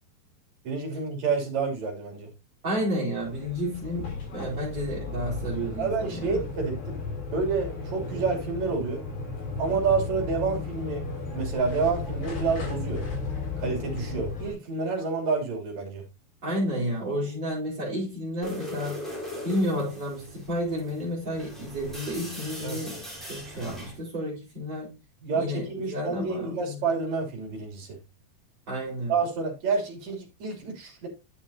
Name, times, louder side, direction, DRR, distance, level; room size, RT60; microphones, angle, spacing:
voice 1, 0.6-2.3 5.8-7.0 7.3-9.1 9.6-11.0 11.3-13.0 13.6-16.0 22.6-22.9 25.2-28.0 29.1-31.1, right 4 dB, 50° right, 4.0 m, -29 dB
voice 2, 2.6-6.4 16.4-19.1 19.4-23.0 23.3-24.9 25.4-26.8 28.7-29.1, equal, 30° right, 4.9 m, -31 dB
sound 1, 3.2-14.5, left 4 dB, 65° left, 7.8 m, -34 dB
sound 2, 18.4-24.0, equal, ahead, 3.9 m, -40 dB
11.5 x 7.2 x 2.7 m
omnidirectional pair, 4.4 m